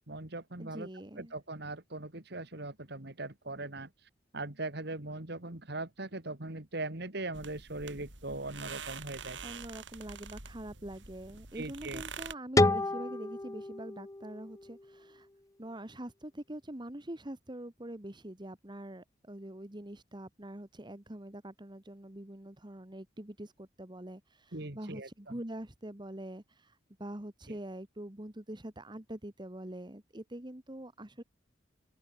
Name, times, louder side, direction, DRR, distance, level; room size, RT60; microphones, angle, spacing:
voice 1, 0.1-0.9 1.2-3.9 4.3-9.4 11.5-12.0 24.5-25.4 27.5-27.6, right 2 dB, 60° right, 2.7 m, -40 dB
voice 2, 0.6-1.3 9.4-15.3 15.6-31.2, right 1 dB, 25° right, 1.8 m, -44 dB
sound 1, 7.3-12.3, right 5 dB, 80° right, 6.6 m, -46 dB
sound 2, 12.6-15.4, left 2 dB, 20° left, 0.7 m, -30 dB
head